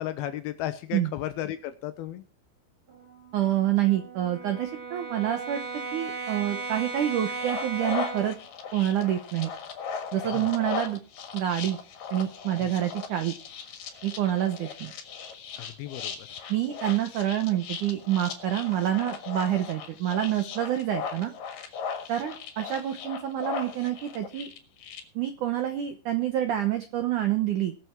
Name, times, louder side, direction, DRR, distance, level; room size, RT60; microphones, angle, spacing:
voice 1, 0.0-2.2 10.3-10.5 12.6-12.7 15.6-16.3, left 12 dB, 80° left, 11 dB, 2.2 m, -34 dB
Brass instrument, 2.9-8.4, right 4 dB, 35° right, 2.5 m, -37 dB
voice 2, 3.3-5.6 5.9-8.3 8.7-9.5 10.1-11.0 11.3-11.8 12.1-13.3 14.0-14.9 16.5-21.3 22.1-24.5 25.1-27.8, right 12 dB, 80° right, 7 dB, 1.8 m, -27 dB
sound 1, 7.3-25.0, left 6 dB, 60° left, 2.9 m, -38 dB
20.5 x 6.9 x 4.6 m, 0.37 s
omnidirectional pair, 5.2 m